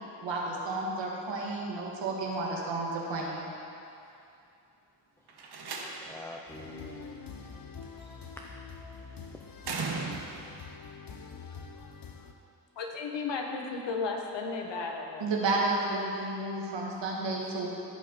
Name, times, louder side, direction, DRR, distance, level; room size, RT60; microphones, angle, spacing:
voice 1, 0.0-3.4 15.2-17.7, right 2 dB, 90° right, -3 dB, 1.7 m, -32 dB
Slam, 5.3-6.3 7.8-8.3 9.6-10.6, right 4 dB, 65° right, 1.2 m, -37 dB
voice 2, 6.0-9.7, left 1 dB, 5° left, 0 dB, 0.6 m, -49 dB
sound 1, 6.5-12.3, left 5 dB, 55° left, 0.8 m, -45 dB
voice 3, 12.8-15.2, left 4 dB, 80° left, 2 dB, 1.2 m, -34 dB
15.5 x 5.2 x 4.4 m, 2.7 s
cardioid pair, 70°, 43 cm